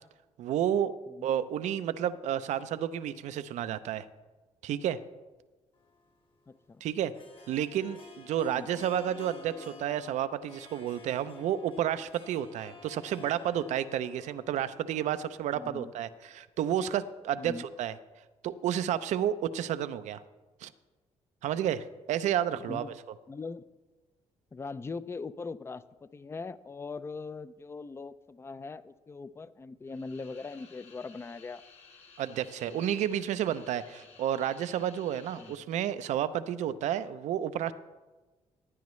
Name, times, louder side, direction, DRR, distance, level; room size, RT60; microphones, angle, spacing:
voice 1, 0.4-0.9 1.2-4.1 4.6-5.0 6.8-7.1 7.5-17.5 17.8-17.9 18.4-20.2 20.6-20.7 21.4-22.9 32.2-37.7, right 10 dB, 80° right, 13 dB, 0.5 m, -31 dB
Harp, 5.8-16.2, left 4 dB, 45° left, 1.7 m, -52 dB
voice 2, 6.5-6.8 8.5-8.7 15.5-15.9 17.4-17.7 22.5-22.9 23.3-23.6 24.5-31.6 32.6-32.9 35.4-35.5, left 4 dB, 20° left, 15 dB, 0.4 m, -41 dB
sound 1, 29.9-35.6, left 5 dB, 60° left, 1.8 m, -56 dB
15.5 x 9.4 x 3.2 m, 1.2 s
cardioid pair, 80°, 12 cm